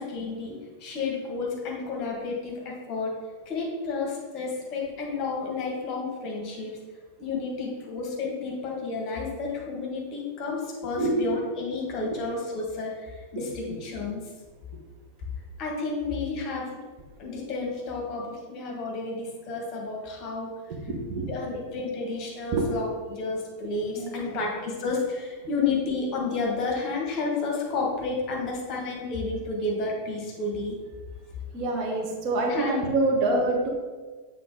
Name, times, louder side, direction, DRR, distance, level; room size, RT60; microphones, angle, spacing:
voice 1, 0.0-6.8 7.2-14.2 15.6-16.8 17.2-20.5 21.3-30.8 32.5-32.8, left 3 dB, 35° left, -1 dB, 1.6 m, -31 dB
voice 2, 10.9-11.3 12.0-12.2 13.3-13.8 20.9-21.3 22.5-22.7 24.0-24.4 31.5-33.7, right 2 dB, 40° right, -1 dB, 1.2 m, -26 dB
7.7 x 3.7 x 3.8 m, 1.4 s
figure-of-eight pair, 90°, 0 cm